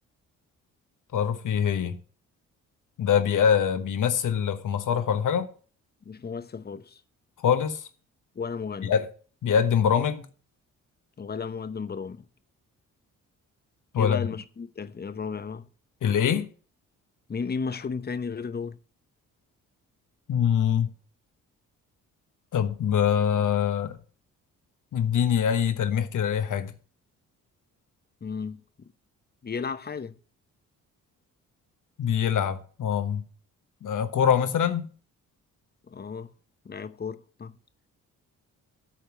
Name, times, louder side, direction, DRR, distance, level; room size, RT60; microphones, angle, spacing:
voice 1, 1.1-2.0 3.0-5.5 7.4-7.9 8.8-9.1 9.4-10.3 13.9-14.3 16.0-16.5 20.3-20.9 22.5-24.0 24.9-26.7 32.0-33.2 33.8-34.9, left 8 dB, 65° left, 1.2 m, -24 dB
voice 2, 6.0-7.0 8.3-8.9 11.2-12.2 14.0-15.7 17.3-18.8 28.2-28.6 29.4-30.2 35.9-36.3 36.6-37.6, left 5 dB, 30° left, 0.8 m, -34 dB
9.9 x 4.4 x 7.3 m
supercardioid pair, 60°, 34 cm